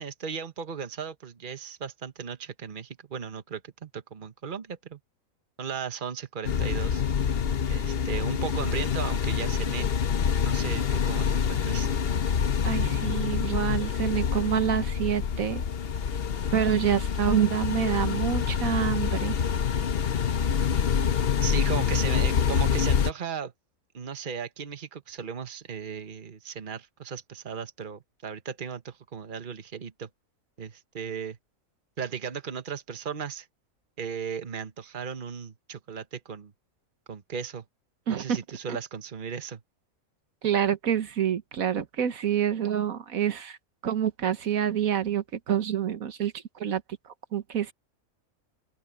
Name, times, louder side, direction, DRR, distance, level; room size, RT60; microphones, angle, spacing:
voice 1, 0.0-5.0 5.6-7.0 7.7-9.9 10.4-11.9 21.4-23.5 23.9-30.1 30.6-31.4 32.0-33.5 34.0-36.5 37.1-37.6 38.1-39.6, right 7 dB, 40° right, 1.3 m, -36 dB
sound 1, 6.4-23.1, left 7 dB, 50° left, 0.9 m, -26 dB
voice 2, 12.6-15.6 16.5-19.4 38.1-38.4 40.4-43.6 43.8-46.3 46.6-46.8 47.3-47.7, right 9 dB, 85° right, 1.6 m, -27 dB
open air
omnidirectional pair, 1.4 m